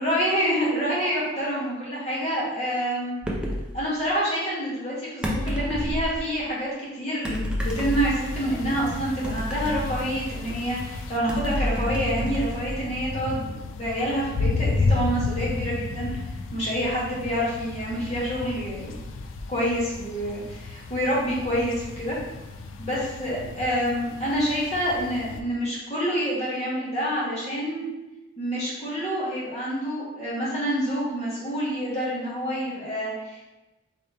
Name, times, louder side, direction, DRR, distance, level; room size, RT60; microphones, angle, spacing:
voice 1, 0.0-3.2 3.7-16.1 16.5-19.0 19.5-22.2 22.8-27.8 28.4-33.4, equal, 30° left, -6 dB, 1.3 m, -27 dB
sound 1, 3.2-3.7 5.2-6.2 7.2-8.5 9.2-10.6 11.3-13.2, equal, 5° right, 0.4 m, -29 dB
sound 2, 7.6-25.4, left 3 dB, 75° left, 0.4 m, -33 dB
4.1 x 3.0 x 3.3 m, 1.0 s
head